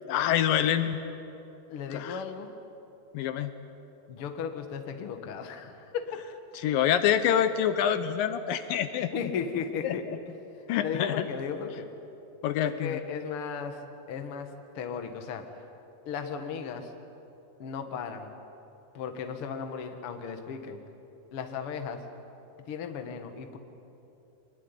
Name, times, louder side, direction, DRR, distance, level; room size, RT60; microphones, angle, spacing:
voice 1, 0.1-1.0 1.9-2.1 3.1-3.5 6.6-9.1 9.8-9.9 10.7-11.1 12.4-13.0, left 10 dB, 75° left, 11 dB, 2.5 m, -26 dB
voice 2, 1.7-2.5 4.1-6.1 9.0-11.9 12.6-15.5 16.1-16.9 17.6-18.3 18.9-20.8 21.3-22.0 22.7-23.6, left 6 dB, 50° left, 6 dB, 2.0 m, -36 dB
23.5 x 21.5 x 9.8 m, 2.9 s
omnidirectional pair, 4.1 m